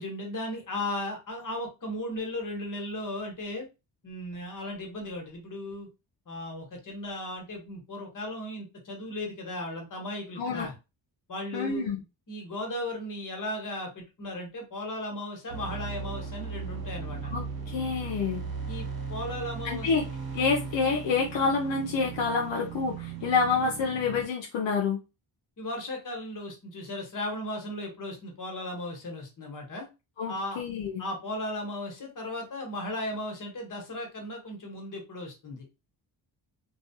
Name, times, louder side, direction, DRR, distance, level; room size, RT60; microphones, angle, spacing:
voice 1, 0.0-3.7 4.0-5.9 6.3-10.7 11.3-11.9 12.3-17.3 18.7-19.9 25.6-29.9 30.3-30.6 31.0-35.6, left 1 dB, 45° left, 2 dB, 1.2 m, -36 dB
voice 2, 10.4-10.7 11.5-12.0 17.3-18.4 19.6-20.0 20.3-25.0 30.2-31.0, left 5 dB, 80° left, 1 dB, 0.6 m, -28 dB
sound 1, 15.5-24.3, right 5 dB, 50° right, 1.0 m, -37 dB
2.4 x 2.2 x 2.7 m, 0.27 s
cardioid pair, 75°, 45 cm